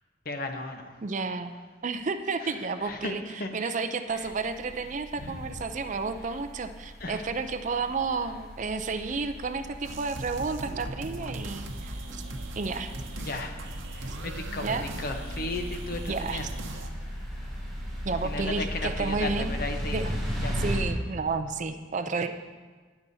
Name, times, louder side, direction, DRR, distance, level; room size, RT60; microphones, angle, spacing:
voice 1, 0.2-1.0 2.4-4.4 5.1-5.5 6.2-6.4 7.0-7.3 13.2-16.5 16.8-17.6 18.2-20.2 20.4-20.6 22.1-22.3, left 2 dB, 50° left, 5 dB, 0.9 m, -36 dB
voice 2, 1.0-1.5 1.8-3.2 3.5-12.2 12.6-12.9 14.1-14.2 14.6-14.8 16.1-16.4 18.0-19.5 19.9-20.2 20.6-22.3, right 4 dB, 40° right, 8 dB, 0.4 m, -31 dB
sound 1, 4.1-20.8, equal, ahead, 3.3 m, -37 dB
sound 2, 9.8-16.9, right 1 dB, 85° right, 0.9 m, -39 dB
19.0 x 6.9 x 2.7 m, 1.4 s
head